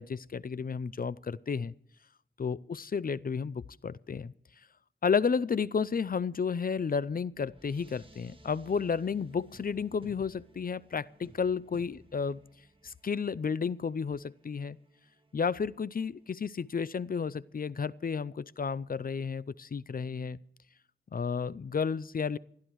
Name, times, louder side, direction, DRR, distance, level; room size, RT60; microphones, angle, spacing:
voice 1, 0.0-1.7 2.4-4.3 5.0-12.4 12.8-14.8 15.3-20.4 21.1-22.4, left 6 dB, 45° left, 0.5 m, -32 dB
sound 1, 6.7-17.2, right 1 dB, 25° right, 1.9 m, -59 dB
28.0 x 12.0 x 3.1 m
cardioid pair, 55°, 21 cm